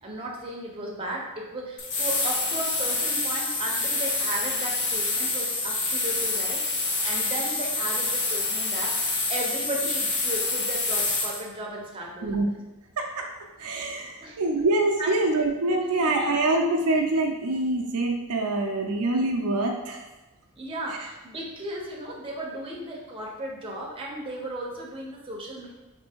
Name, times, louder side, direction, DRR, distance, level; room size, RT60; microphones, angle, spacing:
voice 1, 0.0-12.4 14.2-14.4 15.0-15.1 15.9-16.4 20.6-25.7, right 1 dB, 25° right, -2 dB, 0.7 m, -35 dB
sound 1, 1.8-11.4, left 3 dB, 50° left, 0.8 m, -27 dB
voice 2, 13.0-13.3 13.6-20.0 20.9-21.0, right 2 dB, 80° right, 2 dB, 0.5 m, -25 dB
3.4 x 2.7 x 4.4 m, 1.1 s
head